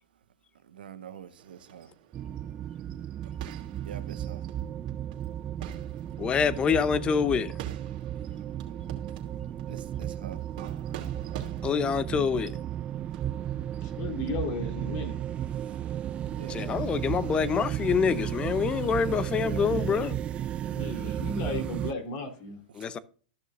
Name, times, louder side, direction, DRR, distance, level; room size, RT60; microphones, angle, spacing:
voice 1, 0.7-1.9 3.8-4.4 9.7-10.4 16.4-16.8, right 8 dB, 80° right, 1.3 m, -44 dB
sound 1, 1.4-14.3, right 10 dB, 55° right, 2.7 m, -49 dB
sound 2, 2.1-21.9, right 11 dB, 20° right, 0.3 m, -34 dB
voice 2, 6.2-7.5 11.6-12.5 16.5-20.2 22.8-23.0, left 6 dB, 20° left, 0.7 m, -26 dB
voice 3, 13.8-15.2 20.7-22.6, left 2 dB, 45° left, 3.4 m, -35 dB
14.0 x 6.4 x 2.5 m
hypercardioid pair, 130°, 5 cm